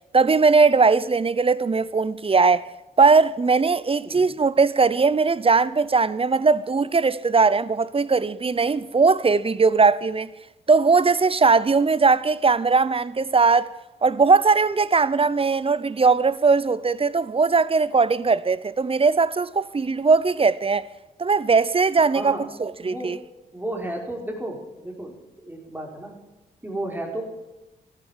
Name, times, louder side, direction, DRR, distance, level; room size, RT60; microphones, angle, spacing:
voice 1, 0.1-2.7 3.0-10.3 10.7-13.7 14.0-20.9 21.2-23.2, right 4 dB, 30° right, 0.7 m, -19 dB
voice 2, 22.1-22.5 22.8-23.2 23.5-26.2 26.6-27.2, right 1 dB, 10° right, 5.1 m, -33 dB
14.5 x 12.5 x 7.5 m
supercardioid pair, 60°, 19 cm